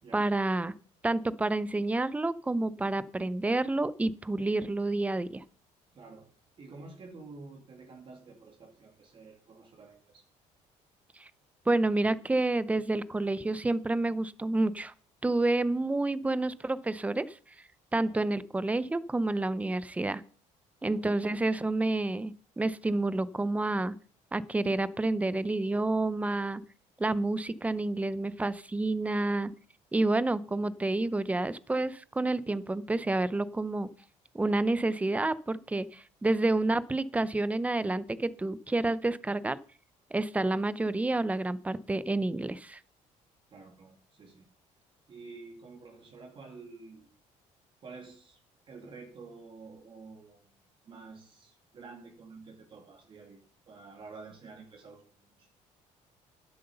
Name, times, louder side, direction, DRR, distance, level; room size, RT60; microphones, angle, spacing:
voice 1, 0.1-0.7 1.0-5.4 11.2-11.3 11.7-14.9 15.2-17.3 17.9-20.2 20.8-23.9 24.3-26.6 27.0-29.5 29.9-33.9 34.3-39.6 40.1-42.8, right 2 dB, 10° right, 17 dB, 0.6 m, -29 dB
voice 2, 5.9-6.3 6.6-10.2 18.0-18.2 20.9-21.1 40.5-40.6 43.5-44.5 45.1-47.1 47.8-48.4 48.7-50.5 50.8-53.4 53.7-55.5, right 4 dB, 40° right, 2 dB, 2.3 m, -49 dB
10.5 x 7.9 x 6.8 m, 0.43 s
cardioid pair, 130°, 13 cm